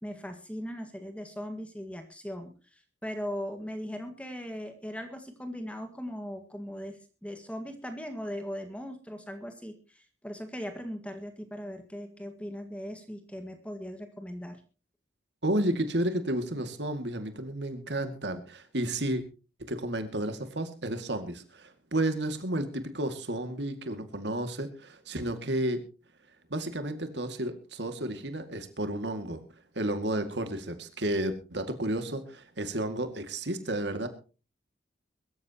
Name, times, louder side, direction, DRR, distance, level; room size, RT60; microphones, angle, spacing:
voice 1, 0.0-14.6, equal, 5° left, 6 dB, 1.7 m, -39 dB
voice 2, 15.4-19.2 19.7-25.8 26.5-29.4 29.8-34.1, right 1 dB, 75° right, 8 dB, 2.2 m, -32 dB
22.5 x 13.5 x 2.9 m, 0.34 s
head